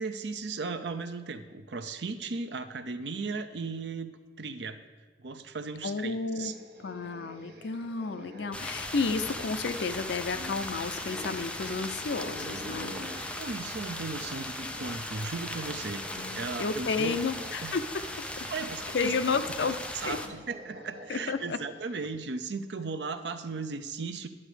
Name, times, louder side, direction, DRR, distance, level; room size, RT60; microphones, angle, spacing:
voice 1, 0.0-4.1 4.4-4.8 5.2-6.5 13.3-16.0 16.3-17.2 17.6-17.8 18.5-19.1 19.4-24.3, right 4 dB, 80° right, 9 dB, 0.7 m, -36 dB
voice 2, 5.8-6.5 6.8-12.9 16.2-17.8 18.2-18.5 18.9-19.8 20.0-20.2 21.1-21.6, left 4 dB, 85° left, 9 dB, 0.5 m, -32 dB
sound 1, 6.2-15.0 15.2-22.0, equal, 65° right, 1.4 m, -48 dB
sound 2, 8.5-20.3, left 1 dB, 5° left, 0.6 m, -38 dB
11.0 x 7.2 x 5.0 m, 1.4 s
head